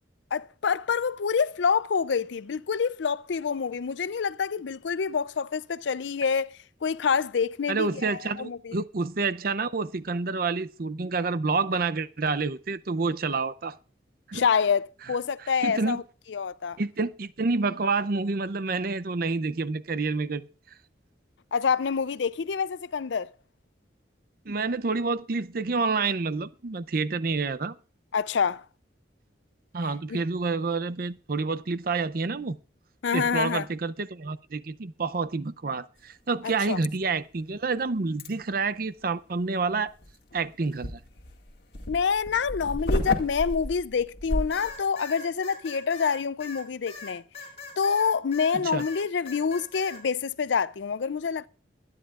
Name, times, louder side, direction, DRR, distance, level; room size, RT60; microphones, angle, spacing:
voice 1, 0.3-6.5 6.8-8.8 14.3-16.0 16.3-16.8 21.5-23.3 28.1-28.6 30.1-30.2 33.0-33.7 36.7-36.8 41.9-47.2 47.8-51.5, left 6 dB, 75° left, 0.5 m, -27 dB
voice 2, 7.7-13.8 14.3-14.4 15.6-16.0 16.8-20.5 24.5-27.8 29.7-32.6 33.1-39.9 40.3-41.0 48.5-48.8, right 4 dB, 50° right, 0.6 m, -28 dB
sound 1, 38.2-38.3 39.9-44.8, left 1 dB, 60° left, 2.1 m, -32 dB
sound 2, 44.5-48.5 48.8-50.0, left 4 dB, 35° left, 5.7 m, -41 dB
22.5 x 9.9 x 2.5 m
head